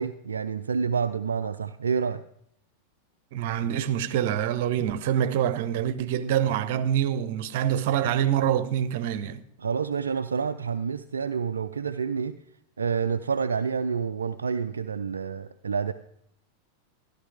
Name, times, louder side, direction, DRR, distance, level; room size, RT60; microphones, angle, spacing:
voice 1, 0.0-2.2 9.6-12.4 12.8-15.9, right 6 dB, 70° right, 0.4 m, -28 dB
voice 2, 3.3-9.4, right 10 dB, 50° right, 0.8 m, -25 dB
14.0 x 11.5 x 3.6 m
figure-of-eight pair, 90°, 0 cm